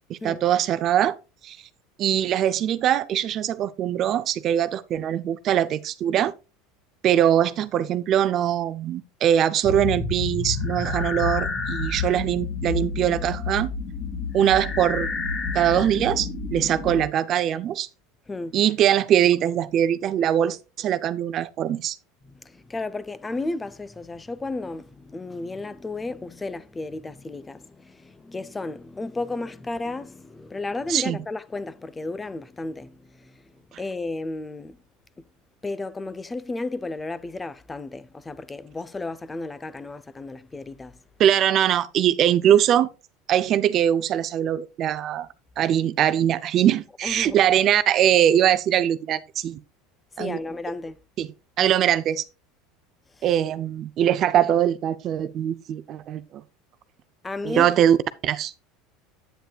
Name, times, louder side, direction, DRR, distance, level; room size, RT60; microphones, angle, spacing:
voice 1, 0.1-1.2 1.4-1.6 2.0-6.3 7.0-13.7 14.3-15.1 15.5-17.9 18.5-22.0 30.9-31.2 41.2-42.9 43.3-45.3 45.6-49.6 50.2-50.4 51.2-51.3 51.6-52.2 53.2-56.4 57.4-58.0 58.2-58.5, right 10 dB, 45° right, 0.6 m, -22 dB
sound 1, 9.6-17.1, left 4 dB, 35° left, 2.4 m, -29 dB
voice 2, 18.3-18.6 22.2-34.8 35.2-35.3 35.6-41.0 47.0-47.4 50.1-51.0 53.1-53.3 54.3-54.5 57.2-57.7, left 2 dB, 15° left, 0.6 m, -33 dB
9.0 x 8.0 x 2.4 m
supercardioid pair, 115°, 0 cm